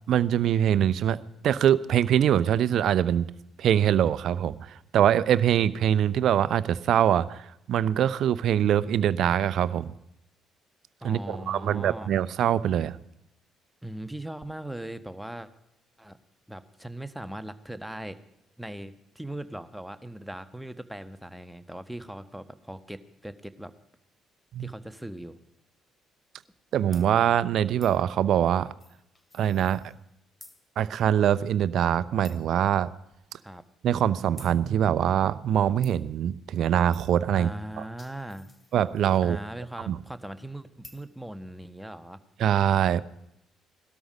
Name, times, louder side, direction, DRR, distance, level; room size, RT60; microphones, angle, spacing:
voice 1, 0.1-1.2 1.4-3.3 3.6-9.9 11.0-13.0 24.5-24.7 26.7-28.7 29.3-29.8 30.8-32.9 33.8-37.5 38.7-39.4 39.9-40.0 42.4-43.0, right 10 dB, 65° right, 17 dB, 0.7 m, -23 dB
voice 2, 11.0-12.1 13.8-15.5 16.0-16.2 16.5-18.2 18.6-23.7 24.6-25.4 33.4-33.6 37.3-38.5 39.2-42.2, right 1 dB, 5° right, 10 dB, 1.4 m, -39 dB
sound 1, 26.9-27.1 27.8-28.0 28.8-30.1 30.4-30.6 31.0-31.1 31.5-31.6 32.2-32.5 33.1-33.2 34.4-34.6 35.8-35.9 36.9-37.2 37.7-39.1 40.8-41.1, left 2 dB, 20° left, 2.7 m, -51 dB
18.5 x 13.0 x 5.3 m, 0.80 s
hypercardioid pair, 50°, 0 cm